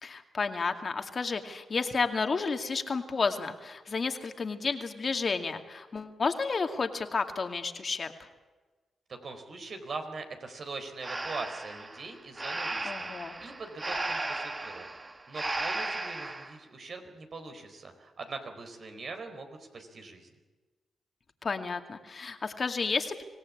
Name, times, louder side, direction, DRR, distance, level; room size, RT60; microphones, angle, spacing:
voice 1, 0.0-8.3 12.8-13.4 21.4-23.2, left 4 dB, 45° left, 6 dB, 2.3 m, -31 dB
voice 2, 9.1-13.1 13.4-14.9 15.3-20.3, right 3 dB, 60° right, 6 dB, 4.2 m, -42 dB
Breathing, 11.0-16.5, right 2 dB, 30° right, 1.8 m, -35 dB
25.5 x 17.5 x 8.6 m, 1.3 s
cardioid pair, 65°, 0 cm